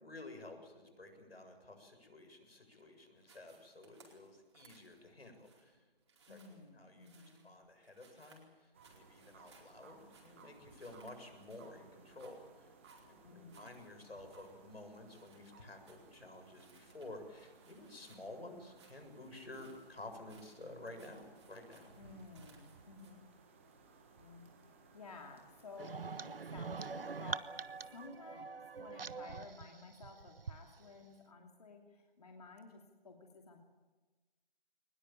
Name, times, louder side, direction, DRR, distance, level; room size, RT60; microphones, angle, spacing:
voice 1, 0.0-5.8 6.3-6.4 6.7-12.4 13.0-21.9, left 2 dB, 85° left, 6 dB, 7.6 m, -52 dB
sound 1, 3.2-23.1, right 4 dB, 30° right, 4.6 m, -67 dB
voice 2, 6.3-7.4 13.2-14.2 22.0-23.3 24.2-24.5 24.9-33.6, left 3 dB, 40° left, 2 dB, 2.7 m, -54 dB
sound 2, 8.7-28.1, right 4 dB, 15° right, 1.5 m, -62 dB
sound 3, 25.8-30.6, right 5 dB, 70° right, 1.0 m, -44 dB
23.0 x 20.5 x 8.9 m, 1.3 s
figure-of-eight pair, 170°, 30 cm